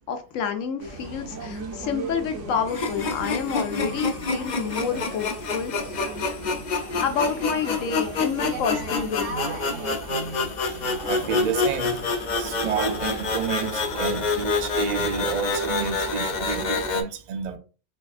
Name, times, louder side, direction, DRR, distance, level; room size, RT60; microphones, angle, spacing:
voice 1, 0.1-6.0 6.2-6.4 7.0-9.3, left 7 dB, 90° left, 1.0 m, -29 dB
sound 1, 0.8-17.0, right 2 dB, 70° right, 1.1 m, -37 dB
sound 2, 2.7-17.0, left 4 dB, 60° left, 0.5 m, -27 dB
voice 2, 11.1-12.0 12.4-17.6, right 7 dB, 55° right, 0.4 m, -30 dB
3.5 x 3.4 x 2.3 m
omnidirectional pair, 1.3 m